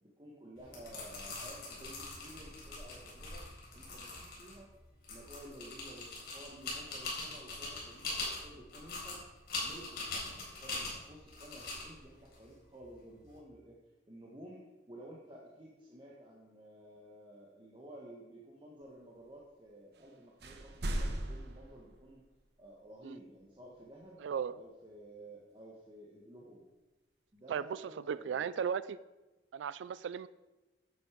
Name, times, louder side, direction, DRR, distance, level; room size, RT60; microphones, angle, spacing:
voice 1, 0.0-3.4 3.7-4.7 5.1-9.2 9.6-13.8 14.1-14.6 14.9-22.2 22.6-24.2 24.5-26.6 27.3-28.5, right 1 dB, 25° right, -4 dB, 1.4 m, -53 dB
sound 1, 0.6-13.3, left 2 dB, 55° left, 4.2 m, -43 dB
sound 2, 19.9-20.1 20.4-22.5, right 1 dB, 65° right, 1.2 m, -38 dB
voice 2, 24.2-24.5 27.5-27.8 28.1-29.0 29.5-30.3, right 7 dB, 80° right, 17 dB, 0.3 m, -36 dB
10.5 x 8.0 x 5.1 m, 1.1 s
head